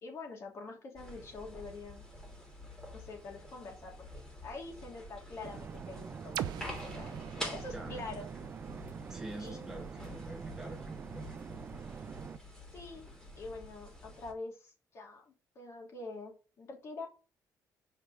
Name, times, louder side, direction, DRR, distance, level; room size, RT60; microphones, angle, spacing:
voice 1, 0.0-2.0 2.9-6.5 6.8-8.3 9.4-9.7 12.7-13.1 13.4-17.1, left 3 dB, 40° left, 1 dB, 2.7 m, -45 dB
sound 1, 1.0-14.3, left 1 dB, 10° left, 2.9 m, -48 dB
sound 2, 5.4-12.4, right 6 dB, 25° right, 0.3 m, -45 dB
sound 3, 6.3-10.2, right 11 dB, 90° right, 0.7 m, -44 dB
voice 2, 7.7-8.0 9.1-11.4, right 1 dB, 5° right, 2 dB, 1.2 m, -46 dB
5.7 x 5.0 x 6.1 m, 0.34 s
cardioid pair, 180°, 7 cm